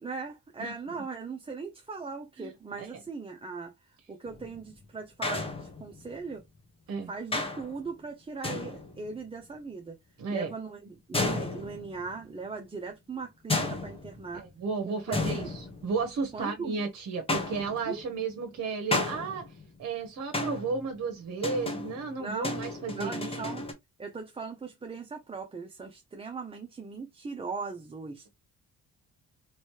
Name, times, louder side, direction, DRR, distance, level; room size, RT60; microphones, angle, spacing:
voice 1, 0.0-6.4 7.1-10.0 10.3-14.4 14.9-15.5 16.3-16.8 17.9-18.0 22.2-23.6 24.0-28.3, right 4 dB, 20° right, 0.6 m, -39 dB
sound 1, 4.3-4.7 5.2-6.2 7.3-7.8 8.4-9.1 11.1-12.2 13.5-14.5 15.1-16.3 17.3-18.0 18.9-19.8 20.3-20.9 21.4-23.7, left 2 dB, 20° left, 1.2 m, -33 dB
voice 2, 10.2-10.5 14.3-19.5 19.8-23.4, right 4 dB, 60° right, 1.0 m, -33 dB
3.2 x 3.1 x 3.1 m
cardioid pair, 90°, 30 cm